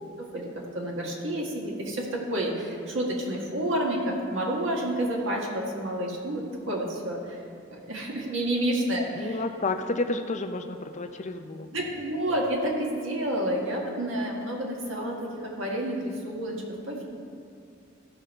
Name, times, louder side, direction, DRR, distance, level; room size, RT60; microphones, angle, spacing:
voice 1, 0.2-0.5 0.7-7.4 7.7-9.4 11.7-17.0, right 1 dB, 75° right, -2 dB, 1.8 m, -29 dB
voice 2, 9.2-11.7, left 2 dB, 40° left, 7 dB, 0.5 m, -30 dB
15.0 x 5.3 x 4.3 m, 2.4 s
head